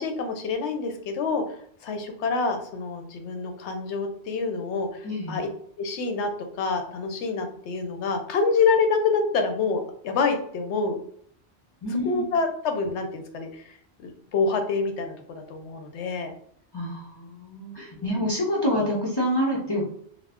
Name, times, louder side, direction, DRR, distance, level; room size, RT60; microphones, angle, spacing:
voice 1, 0.0-1.6 1.8-5.5 5.8-6.3 6.6-11.0 12.0-13.7 14.0-16.3 18.0-18.1, left 4 dB, 80° left, 5 dB, 0.9 m, -27 dB
voice 2, 5.0-5.4 11.8-12.3 16.7-19.9, left 1 dB, 30° left, -4 dB, 0.5 m, -27 dB
2.4 x 2.1 x 3.4 m, 0.63 s
omnidirectional pair, 1.1 m